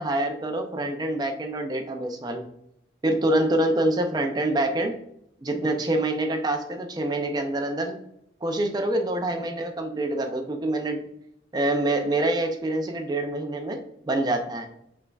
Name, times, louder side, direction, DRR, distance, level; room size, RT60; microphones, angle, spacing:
voice 1, 0.0-2.4 3.0-5.0 5.4-8.0 8.4-11.0 11.5-13.8 14.1-14.7, right 1 dB, 20° right, 5 dB, 0.3 m, -26 dB
6.1 x 3.3 x 2.3 m, 0.77 s
head